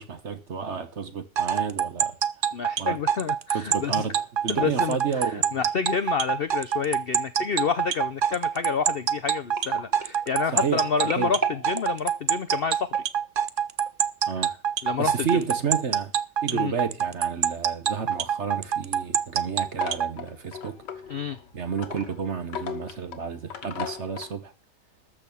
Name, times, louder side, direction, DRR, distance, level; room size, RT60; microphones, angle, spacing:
voice 1, 0.0-2.2 2.8-3.0 3.5-5.6 10.5-11.3 14.3-14.5 15.0-16.1 16.4-20.8 21.5-24.5, right 6 dB, 45° right, 1.2 m, -31 dB
sound 1, 1.3-20.1, right 8 dB, 85° right, 0.4 m, -25 dB
voice 2, 2.5-4.1 4.5-13.0 14.4-14.5 14.8-15.4 16.5-16.7 21.1-21.4, left 6 dB, 65° left, 0.5 m, -29 dB
sound 2, 8.2-13.3 13.9-14.1 14.4-14.5, right 2 dB, 25° right, 1.8 m, -39 dB
sound 3, 18.1-24.3, left 7 dB, 90° left, 2.0 m, -39 dB
13.5 x 6.2 x 7.0 m
omnidirectional pair, 1.9 m